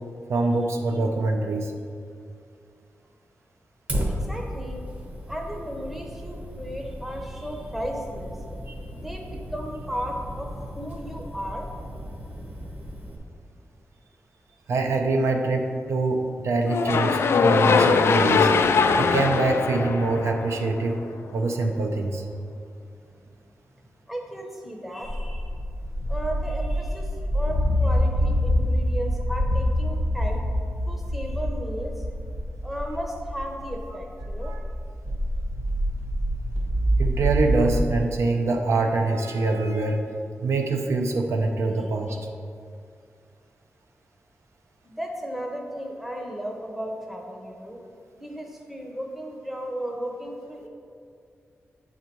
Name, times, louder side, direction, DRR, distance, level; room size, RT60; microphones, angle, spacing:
voice 1, 0.3-1.7 8.7-8.8 14.7-18.5 19.0-21.0 21.3-22.2 34.4-34.6 37.0-40.0 40.4-42.2, right 3 dB, 70° right, 3 dB, 0.6 m, -24 dB
Fire, 3.9-13.2, equal, 30° right, 0.9 m, -35 dB
voice 2, 4.1-4.8 5.3-8.3 8.9-12.2 24.1-25.5 26.1-30.4 30.9-32.0 32.6-34.5 41.8-42.2 44.8-47.8 48.2-50.7, equal, 5° right, 1 dB, 0.7 m, -35 dB
sound 1, 16.7-20.9, left 5 dB, 60° left, 0.3 m, -21 dB
sound 2, 25.0-37.8, equal, 55° right, 1.5 m, -26 dB
8.9 x 4.1 x 4.5 m, 2.3 s
wide cardioid pair, 165°, 5 cm